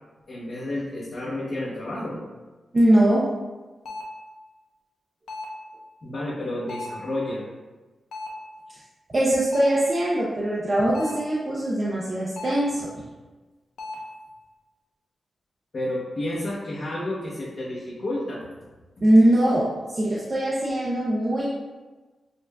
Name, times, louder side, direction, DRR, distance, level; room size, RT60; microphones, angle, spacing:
voice 1, 0.3-2.2 6.0-7.4 15.7-18.4, left 1 dB, 45° left, -8 dB, 0.8 m, -30 dB
voice 2, 2.7-3.3 9.1-12.9 19.0-19.7 19.9-21.5, right 1 dB, 30° right, -6 dB, 0.5 m, -21 dB
sound 1, 3.9-4.2 5.3-5.7 6.7-7.1 8.1-8.5 9.5-9.9 10.9-11.3 12.4-12.8 13.8-14.1, left 2 dB, 90° left, 0.7 m, -36 dB
6.5 x 2.5 x 2.2 m, 1.2 s
wide cardioid pair, 145°, 0 cm